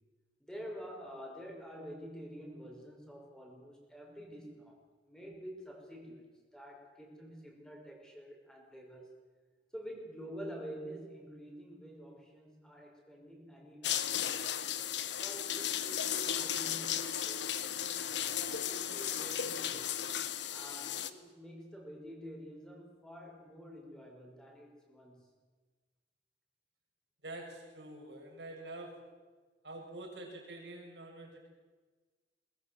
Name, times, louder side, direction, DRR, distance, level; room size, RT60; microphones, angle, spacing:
voice 1, 0.4-4.8 5.1-6.3 6.5-9.1 9.7-14.5 15.2-20.0 20.5-25.3, equal, 5° left, 0 dB, 5.6 m, -48 dB
sound 1, 13.8-21.1, left 9 dB, 75° left, 1.2 m, -35 dB
voice 2, 27.2-29.1 29.6-31.5, right 2 dB, 75° right, 0 dB, 6.7 m, -46 dB
22.0 x 20.0 x 7.8 m, 1.3 s
head